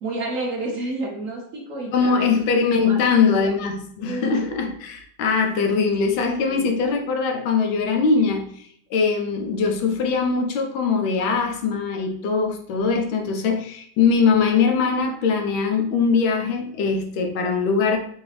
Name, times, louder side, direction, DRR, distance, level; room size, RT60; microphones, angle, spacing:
voice 1, 0.0-3.0 4.0-4.5 6.4-6.7, right 2 dB, 55° right, -2 dB, 1.0 m, -31 dB
voice 2, 1.9-18.0, left 5 dB, 90° left, 3 dB, 1.5 m, -21 dB
4.8 x 2.7 x 3.1 m, 0.65 s
omnidirectional pair, 2.0 m